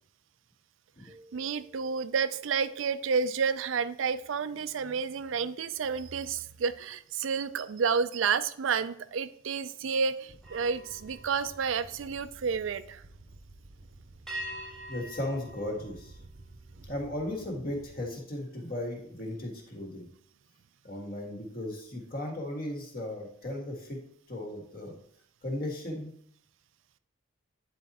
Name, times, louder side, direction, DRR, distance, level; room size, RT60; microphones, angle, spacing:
sound 1, 1.1-6.6 7.1-7.4 10.4-12.6 14.3-16.8, equal, ahead, 1.1 m, -48 dB
voice 1, 1.3-13.0, right 6 dB, 80° right, 13 dB, 0.5 m, -30 dB
sound 2, 10.3-18.1, right 2 dB, 60° right, 0.8 m, -53 dB
voice 2, 14.9-16.2 16.8-20.1 20.8-24.0 24.3-25.0 25.4-26.1, left 1 dB, 45° left, 1 dB, 1.7 m, -36 dB
9.3 x 4.2 x 4.2 m, 0.64 s
head